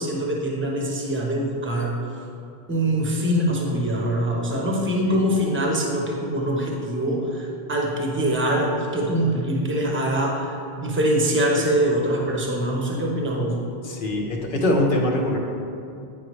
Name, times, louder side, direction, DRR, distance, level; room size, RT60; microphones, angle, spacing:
voice 1, 0.0-2.0 2.7-13.6, right 1 dB, 15° right, -1 dB, 0.8 m, -23 dB
voice 2, 13.8-15.4, left 1 dB, 60° left, 0 dB, 1.0 m, -23 dB
9.2 x 5.1 x 3.1 m, 2.5 s
omnidirectional pair, 1.0 m